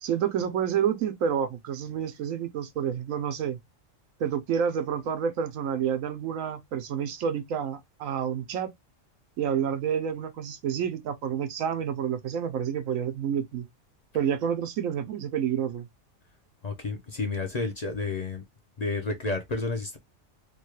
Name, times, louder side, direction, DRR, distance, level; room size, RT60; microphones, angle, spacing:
voice 1, 0.0-3.6 4.2-8.7 9.4-13.7 14.1-15.9, right 8 dB, 90° right, 1.1 m, -29 dB
voice 2, 16.6-18.4 18.8-20.0, left 3 dB, 40° left, 0.7 m, -31 dB
3.5 x 2.2 x 3.1 m
omnidirectional pair, 1.3 m